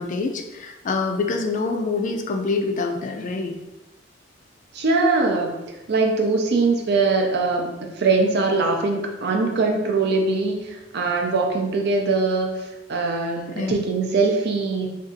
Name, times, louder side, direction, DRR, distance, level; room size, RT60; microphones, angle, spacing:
voice 1, 0.0-3.6 13.5-13.8, left 3 dB, 40° left, 4 dB, 0.3 m, -26 dB
voice 2, 4.7-5.5 5.9-7.7 8.0-14.9, right 3 dB, 60° right, 2 dB, 0.5 m, -22 dB
2.6 x 2.4 x 3.8 m, 1.0 s
head